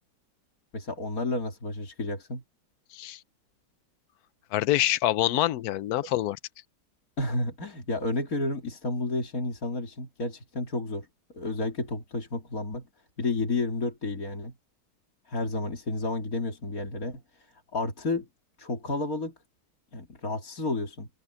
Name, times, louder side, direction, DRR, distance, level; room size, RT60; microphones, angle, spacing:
voice 1, 0.7-2.4 7.2-11.1 11.3-12.9 13.2-14.5 15.3-18.3 18.6-19.3 19.9-21.1, left 2 dB, 50° left, 3.2 m, -31 dB
voice 2, 4.5-6.4, left 14 dB, 70° left, 1.0 m, -25 dB
omnidirectional pair, 1.9 m